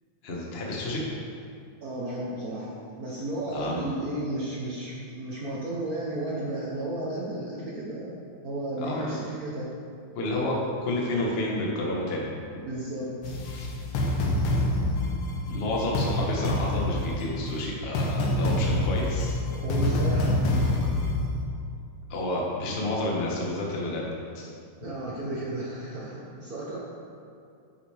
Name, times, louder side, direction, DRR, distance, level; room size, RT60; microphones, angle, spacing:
voice 1, 0.2-1.0 3.5-3.8 8.8-9.2 10.1-10.6 10.8-12.3 14.6-14.7 15.4-19.4 22.1-24.0 24.3-24.5 24.8-24.9, left 1 dB, 45° left, -3 dB, 0.8 m, -30 dB
voice 2, 1.8-9.7 12.6-13.4 19.6-20.5 24.8-26.8, right 1 dB, 85° right, -5 dB, 0.8 m, -33 dB
sound 1, 13.2-21.4, left 1 dB, 65° left, 1.8 m, -27 dB
9.0 x 8.5 x 3.5 m, 2.4 s
omnidirectional pair, 3.3 m